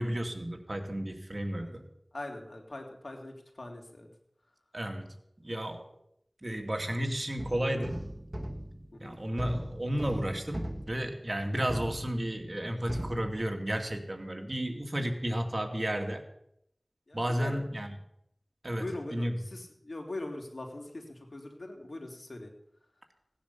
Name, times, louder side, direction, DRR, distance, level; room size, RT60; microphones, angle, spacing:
voice 1, 0.0-1.8 4.7-5.2 5.4-5.9 6.4-8.0 9.0-16.2 17.1-18.0 18.6-19.5, equal, 45° right, 4 dB, 2.4 m, -32 dB
voice 2, 1.5-4.1 8.9-9.2 17.1-17.6 18.8-22.5, left 2 dB, 75° left, 2 dB, 3.2 m, -42 dB
sound 1, 7.4-12.6 12.9-14.0, equal, 30° right, 1.5 m, -40 dB
17.5 x 10.0 x 7.0 m, 0.75 s
wide cardioid pair, 50°, 0 cm